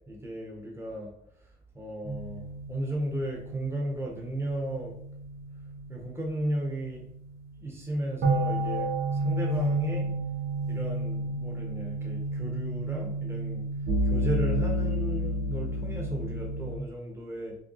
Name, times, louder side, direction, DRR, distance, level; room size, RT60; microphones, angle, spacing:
voice 1, 0.1-1.1 1.7-4.9 5.9-7.0 7.6-10.1 10.7-13.7 14.0-17.6, right 1 dB, 15° right, -1 dB, 1.0 m, -34 dB
sound 1, 2.0-16.8, right 1 dB, 65° right, 1.1 m, -31 dB
4.9 x 2.2 x 3.1 m, 0.71 s
cardioid pair, 110°, 17 cm